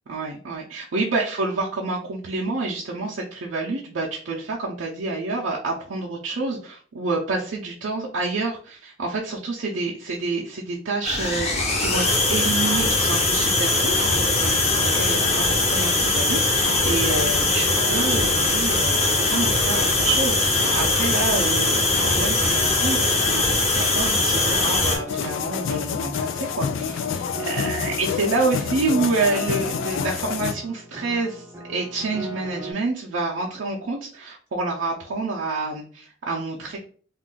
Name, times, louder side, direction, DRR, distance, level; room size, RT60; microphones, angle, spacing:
voice 1, 0.1-36.8, right 3 dB, 80° right, -3 dB, 0.5 m, -28 dB
sound 1, 11.0-25.0, left 2 dB, 35° left, 0.8 m, -21 dB
Piano, 13.5-32.7, right 1 dB, 10° right, 0.5 m, -39 dB
sound 2, 25.1-30.5, left 7 dB, 85° left, 0.3 m, -28 dB
2.5 x 2.3 x 3.8 m, 0.43 s
head